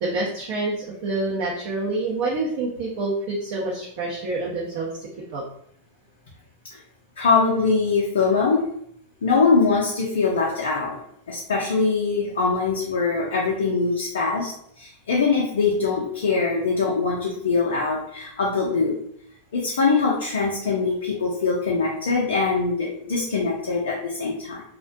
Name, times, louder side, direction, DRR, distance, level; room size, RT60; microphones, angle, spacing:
voice 1, 0.0-5.4 8.2-8.4 10.0-10.1 17.4-17.5 22.9-23.1, right 2 dB, 50° right, -5 dB, 0.5 m, -28 dB
voice 2, 7.2-8.7 9.2-11.0 11.3-19.0 19.5-24.6, left 4 dB, 65° left, -3 dB, 0.4 m, -22 dB
2.4 x 2.1 x 2.5 m, 0.69 s
figure-of-eight pair, 90°, 0 cm